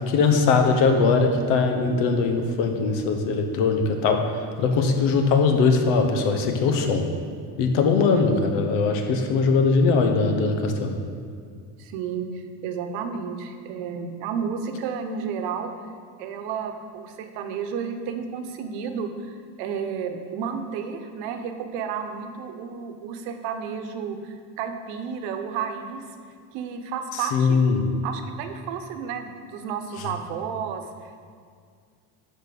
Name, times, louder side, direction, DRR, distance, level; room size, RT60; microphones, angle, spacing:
voice 1, 0.1-4.2 4.6-7.1 7.6-11.0 27.2-27.8 30.0-30.1, left 4 dB, 85° left, 5 dB, 1.2 m, -21 dB
voice 2, 8.1-8.5 11.8-12.3 12.6-15.7 16.2-26.0 26.5-27.6 28.0-31.2, right 6 dB, 85° right, 6 dB, 1.0 m, -32 dB
10.5 x 4.4 x 6.1 m, 2.1 s
cardioid pair, 110°, 42 cm